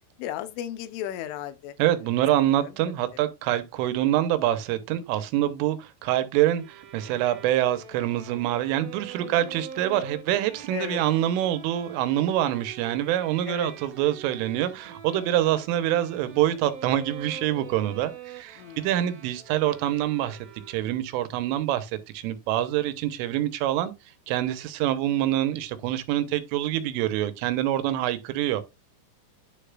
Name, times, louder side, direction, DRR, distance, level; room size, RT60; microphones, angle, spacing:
voice 1, 0.2-1.8 2.5-2.7 9.2-9.6 10.7-11.0 13.5-13.7 15.1-15.4 18.6-18.9, left 11 dB, 80° left, 3.3 m, -35 dB
voice 2, 1.8-20.4 20.7-23.9 24.3-28.6, right 13 dB, 90° right, 3.4 m, -25 dB
Bowed string instrument, 6.6-21.1, right 7 dB, 65° right, 2.4 m, -44 dB
10.0 x 6.7 x 2.4 m
omnidirectional pair, 5.6 m